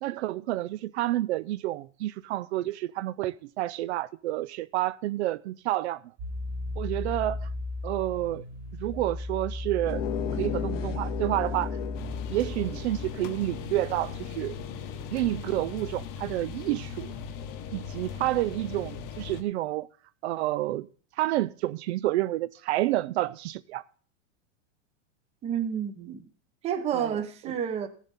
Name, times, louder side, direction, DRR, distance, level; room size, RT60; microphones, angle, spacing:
voice 1, 0.0-6.0 6.8-7.5 7.8-8.4 8.7-10.0 10.3-11.8 12.3-14.5 15.1-17.1 17.7-19.9 20.2-20.9 21.2-23.8 26.9-27.2, right 15 dB, 65° right, 0.5 m, -29 dB
sound 1, 6.2-13.1, left 2 dB, 40° right, 2.3 m, -35 dB
sound 2, 9.8-15.1, left 11 dB, 80° left, 1.0 m, -37 dB
sound 3, 11.9-19.4, left 7 dB, 35° left, 0.9 m, -39 dB
voice 2, 25.4-26.2 26.6-27.9, right 8 dB, 15° right, 0.7 m, -30 dB
16.0 x 7.2 x 4.1 m
supercardioid pair, 170°, 36 cm